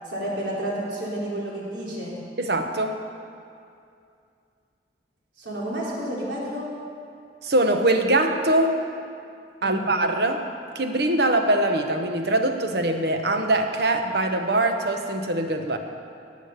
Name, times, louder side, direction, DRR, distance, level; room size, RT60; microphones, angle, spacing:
voice 1, 0.1-2.2 5.4-6.7 9.6-9.9, right 1 dB, 90° right, -5 dB, 3.7 m, -30 dB
voice 2, 2.4-3.0 7.4-8.8 9.6-10.5 10.7-15.8, right 1 dB, 65° right, 5 dB, 1.1 m, -22 dB
17.0 x 8.5 x 6.7 m, 2.4 s
head